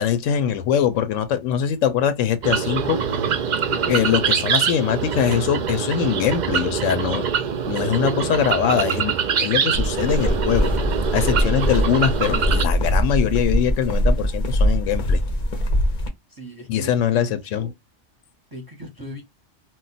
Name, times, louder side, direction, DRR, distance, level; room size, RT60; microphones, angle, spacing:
voice 1, 0.0-3.0 3.7-7.2 7.7-10.7 11.1-15.2 16.7-17.7, left 9 dB, 85° left, 0.9 m, -22 dB
sound 1, 2.4-12.6, right 7 dB, 65° right, 0.4 m, -24 dB
sound 2, 9.7-16.1, equal, 50° left, 0.6 m, -22 dB
voice 2, 16.3-17.7 18.5-19.2, equal, 25° right, 0.6 m, -38 dB
2.3 x 2.1 x 3.9 m
omnidirectional pair, 1.3 m